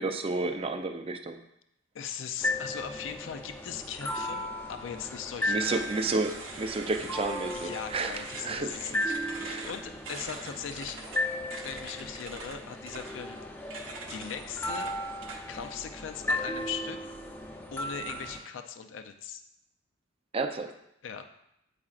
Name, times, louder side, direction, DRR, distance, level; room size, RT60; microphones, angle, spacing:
voice 1, 0.0-1.4 5.5-8.8 9.2-9.7 20.3-20.7, right 3 dB, 30° right, 7 dB, 0.4 m, -31 dB
voice 2, 1.9-5.9 7.5-11.0 11.6-15.0 15.5-17.0 17.7-19.4 21.0-21.3, left 7 dB, 75° left, 8 dB, 0.4 m, -39 dB
sound 1, 2.4-18.4, left 1 dB, 10° left, 0.7 m, -36 dB
sound 2, 5.6-15.7, right 3 dB, 85° right, 0.8 m, -44 dB
8.5 x 4.8 x 2.4 m, 0.80 s
head